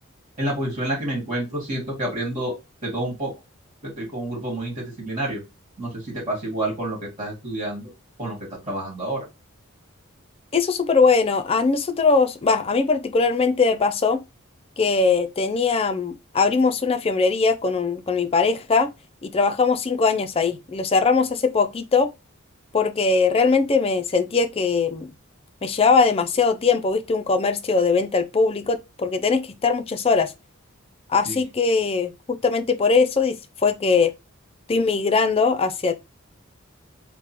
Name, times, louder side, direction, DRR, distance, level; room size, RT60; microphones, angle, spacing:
voice 1, 0.4-2.6 2.8-3.3 3.8-5.4 5.8-7.9 8.2-8.4 8.6-9.2 31.2-31.4, right 1 dB, 25° right, 1.9 m, -28 dB
voice 2, 10.5-14.2 14.8-18.9 19.2-22.1 22.7-25.1 25.6-30.3 31.1-34.1 34.7-35.9, left 4 dB, 25° left, 0.4 m, -21 dB
3.5 x 2.2 x 4.4 m
head